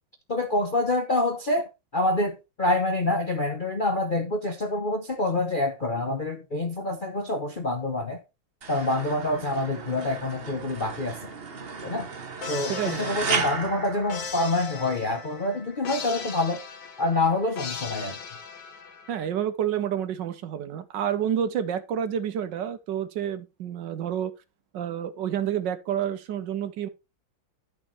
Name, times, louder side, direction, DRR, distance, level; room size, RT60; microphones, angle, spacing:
voice 1, 0.3-8.2 8.7-11.2 11.8-12.1 12.5-16.6 17.0-18.2, left 2 dB, 40° left, 0.7 m, -26 dB
sound 1, 8.6-14.9, right 5 dB, 40° right, 1.0 m, -34 dB
sound 2, 12.4-19.3, left 6 dB, 65° left, 2.0 m, -38 dB
voice 2, 12.7-13.2 19.1-24.3 24.7-26.9, right 9 dB, 70° right, 1.3 m, -29 dB
11.0 x 6.4 x 3.2 m
omnidirectional pair, 2.2 m